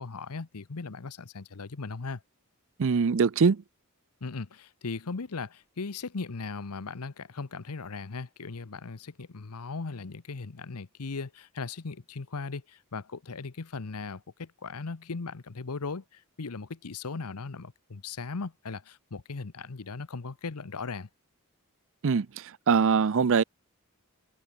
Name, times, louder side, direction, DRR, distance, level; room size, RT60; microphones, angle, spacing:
voice 1, 0.0-2.2 4.2-21.1, left 4 dB, 85° left, 0.9 m, -38 dB
voice 2, 2.8-3.6 22.0-22.3 22.7-23.4, right 5 dB, 60° right, 0.5 m, -22 dB
open air
head